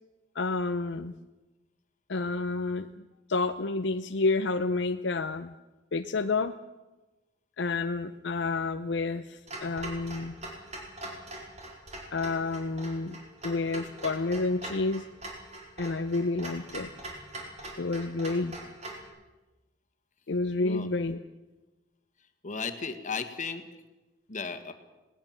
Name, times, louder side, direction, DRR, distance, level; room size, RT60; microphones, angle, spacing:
voice 1, 0.3-1.1 2.1-2.9 3.3-5.5 5.9-6.5 7.6-10.3 12.1-13.2 13.4-15.0 15.8-16.9 17.8-18.6 20.3-21.2, left 3 dB, 65° left, 8 dB, 0.6 m, -29 dB
Clock, 9.5-19.0, right 1 dB, 35° right, 4.8 m, -42 dB
voice 2, 22.4-23.6 24.3-24.7, left 5 dB, 40° left, 8 dB, 1.8 m, -35 dB
20.0 x 18.5 x 7.4 m, 1.1 s
head